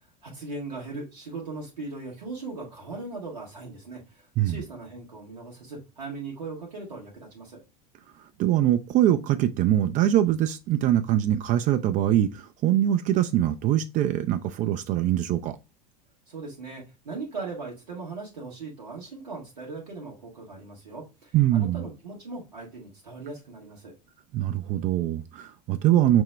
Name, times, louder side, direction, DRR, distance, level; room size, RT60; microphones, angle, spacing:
voice 1, 0.2-7.6 16.3-23.9, right 3 dB, 80° right, 1.4 m, -39 dB
voice 2, 8.4-15.6 21.3-21.8 24.3-26.2, right 12 dB, 40° right, 0.4 m, -23 dB
6.0 x 2.1 x 3.3 m
figure-of-eight pair, 80°, 20 cm